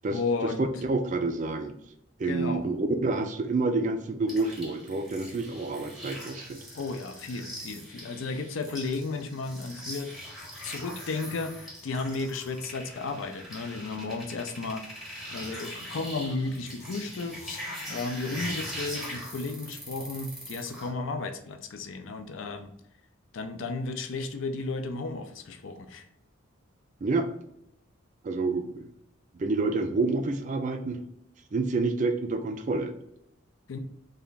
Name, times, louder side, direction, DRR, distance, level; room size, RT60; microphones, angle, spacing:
voice 1, 0.1-0.7 2.3-2.7 6.7-10.1 10.6-14.9 15.3-17.6 17.9-22.7 23.3-26.1 33.7-33.8, left 3 dB, 70° left, 8 dB, 0.4 m, -34 dB
voice 2, 0.6-1.7 2.2-6.6 27.0-27.3 28.2-28.9 29.3-31.0 31.5-32.9, right 3 dB, 35° right, 7 dB, 0.3 m, -28 dB
sound 1, 4.3-20.9, equal, ahead, 0.7 m, -41 dB
3.4 x 2.2 x 3.9 m, 0.78 s
head